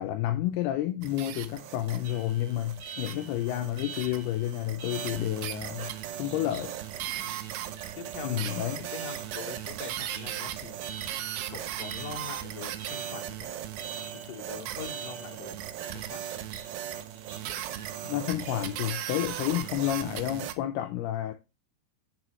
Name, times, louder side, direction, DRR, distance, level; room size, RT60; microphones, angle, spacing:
voice 1, 0.0-6.7 8.2-8.8 18.0-21.3, left 13 dB, 80° left, 2.6 m, -30 dB
sound 1, 1.0-20.5, right 11 dB, 85° right, 2.7 m, -38 dB
Alarm, 2.0-19.9, right 5 dB, 60° right, 2.3 m, -47 dB
voice 2, 7.1-7.5 7.9-8.5 8.9-10.7 11.5-13.5 14.1-15.6 15.9-16.2 20.8-21.0, left 7 dB, 65° left, 2.9 m, -43 dB
9.4 x 5.6 x 3.1 m
omnidirectional pair, 4.6 m